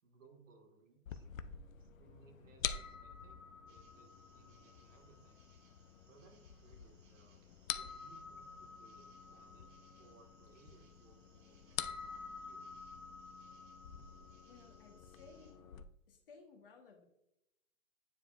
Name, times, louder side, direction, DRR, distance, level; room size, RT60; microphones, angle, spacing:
voice 1, 0.0-1.3 1.8-5.4 6.0-7.4 7.7-12.9, right 4 dB, 70° right, 2 dB, 1.6 m, -65 dB
sound 1, 1.1-15.8, left 7 dB, 85° left, 0.6 m, -47 dB
sound 2, 3.7-15.5, right 4 dB, 40° right, 1.5 m, -72 dB
voice 2, 14.5-15.7 16.1-17.0, left 4 dB, 45° left, 3 dB, 1.1 m, -59 dB
9.5 x 5.0 x 2.4 m, 0.87 s
hypercardioid pair, 160°, 39 cm